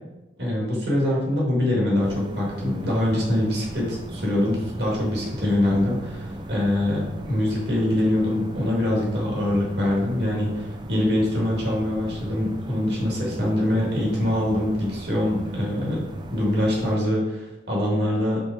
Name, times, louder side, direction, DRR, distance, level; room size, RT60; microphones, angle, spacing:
voice 1, 0.4-16.0 16.3-18.4, left 1 dB, 55° right, -3 dB, 2.0 m, -24 dB
sound 1, 2.0-17.0, right 1 dB, 25° right, 0.4 m, -36 dB
5.3 x 3.9 x 4.8 m, 1.0 s
head